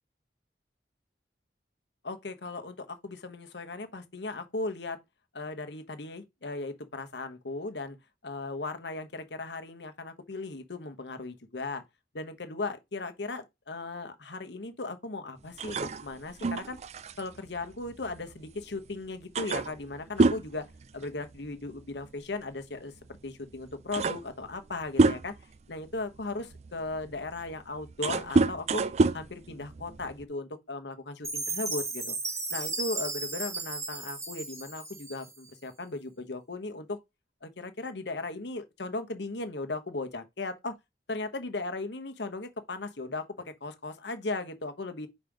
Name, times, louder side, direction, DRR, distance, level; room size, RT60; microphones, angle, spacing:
voice 1, 2.0-5.0 5.3-8.0 8.2-11.8 12.1-16.8 17.2-22.9 23.2-25.3 25.7-28.8 29.1-32.2 32.5-37.0 37.4-40.8 41.1-45.1, left 2 dB, 75° left, 1.1 m, -37 dB
sound 1, 15.6-18.6 18.9-19.0 19.4-21.5 21.8-22.1 23.1-23.2 23.6-25.6 26.2-30.2, right 3 dB, 35° right, 0.4 m, -28 dB
Chime, 31.2-35.5, right 3 dB, 15° right, 1.2 m, -35 dB
5.4 x 4.2 x 5.0 m
head